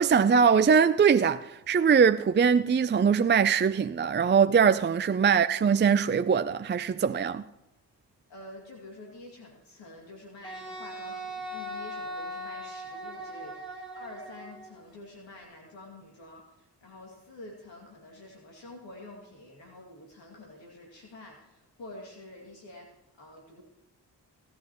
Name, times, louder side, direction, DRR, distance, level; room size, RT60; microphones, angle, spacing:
voice 1, 0.0-7.4, right 6 dB, 25° right, 0.5 m, -22 dB
voice 2, 8.3-23.6, left 2 dB, 80° left, 2.6 m, -48 dB
Wind instrument woodwind instrument, 10.4-14.7, equal, 10° left, 5.4 m, -39 dB
19.5 x 11.5 x 3.1 m
supercardioid pair, 40°, 44 cm